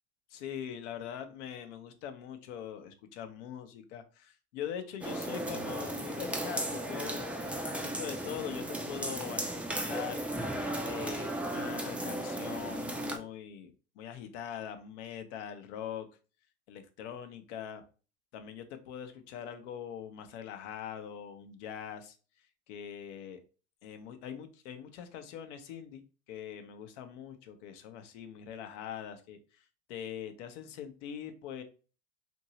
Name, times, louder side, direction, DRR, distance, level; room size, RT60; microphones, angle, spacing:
voice 1, 0.3-10.4 10.8-16.1 16.7-17.8 18.3-22.2 22.7-23.4 23.8-26.0 26.3-31.6, left 9 dB, 70° left, 8 dB, 0.7 m, -42 dB
sound 1, 5.0-13.2, right 1 dB, 5° right, 0.3 m, -35 dB
2.8 x 2.6 x 2.9 m, 0.35 s
hypercardioid pair, 90°, 37 cm